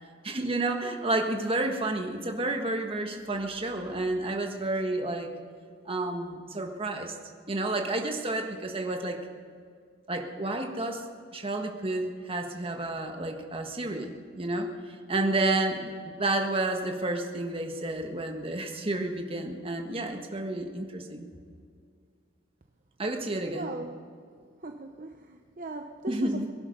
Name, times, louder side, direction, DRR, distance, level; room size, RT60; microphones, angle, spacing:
voice 1, 0.2-5.3 5.8-7.1 7.5-9.2 10.1-11.1 11.3-14.7 15.1-21.3 23.0-23.7 26.1-26.5, right 2 dB, 30° right, 3 dB, 1.5 m, -30 dB
voice 2, 23.5-24.0 24.6-26.5, right 2 dB, 45° right, 4 dB, 0.8 m, -39 dB
22.0 x 11.5 x 5.4 m, 2.1 s
head